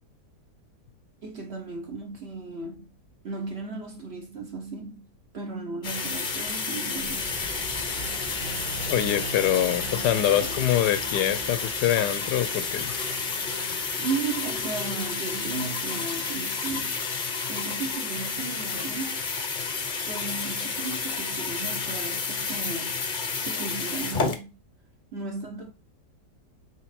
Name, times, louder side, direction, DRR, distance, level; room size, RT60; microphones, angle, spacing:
voice 1, 1.2-2.9 3.2-7.4 10.3-10.4 13.9-17.1 17.5-19.2 20.1-23.0 23.4-24.5 25.1-25.7, right 4 dB, 45° right, 1.1 m, -35 dB
sound 1, 5.8-24.4, left 4 dB, 40° left, 0.7 m, -31 dB
sound 2, 6.9-17.4, right 3 dB, 80° right, 2.5 m, -42 dB
voice 2, 8.9-13.0, left 11 dB, 75° left, 1.1 m, -25 dB
5.2 x 4.5 x 4.2 m
omnidirectional pair, 1.9 m